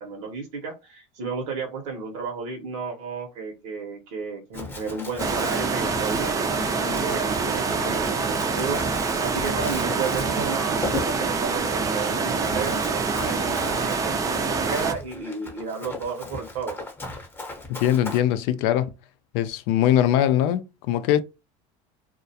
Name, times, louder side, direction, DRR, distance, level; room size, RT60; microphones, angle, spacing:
voice 1, 0.0-16.8, right 4 dB, 75° right, 0.8 m, -33 dB
Run, 4.5-18.2, left 2 dB, 15° left, 0.8 m, -38 dB
sound 1, 5.2-14.9, right 4 dB, 20° right, 0.4 m, -26 dB
voice 2, 17.7-18.9 19.3-21.2, left 11 dB, 70° left, 0.4 m, -21 dB
2.3 x 2.1 x 2.7 m
supercardioid pair, 115°, 17 cm